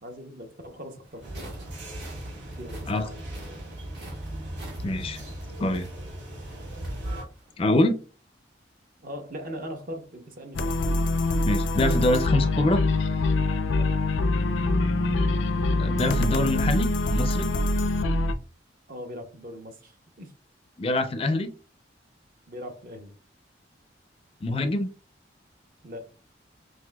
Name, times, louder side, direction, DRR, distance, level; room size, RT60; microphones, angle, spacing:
voice 1, 0.0-1.5 2.5-3.7 9.0-10.8 13.7-13.9 18.9-20.3 22.5-23.2 25.8-26.1, equal, 45° right, 5 dB, 0.7 m, -40 dB
sound 1, 1.0-7.5, right 1 dB, 65° right, 1.8 m, -49 dB
sound 2, 1.2-7.2, right 1 dB, 80° right, 1.7 m, -37 dB
voice 2, 4.8-5.2 5.6-5.9 7.6-8.0 11.4-12.8 15.8-17.5 20.8-21.5 24.4-24.9, left 1 dB, 30° left, 8 dB, 0.4 m, -24 dB
sound 3, 10.5-18.3, left 2 dB, 90° left, 0.5 m, -24 dB
5.8 x 2.5 x 2.2 m, 0.35 s
head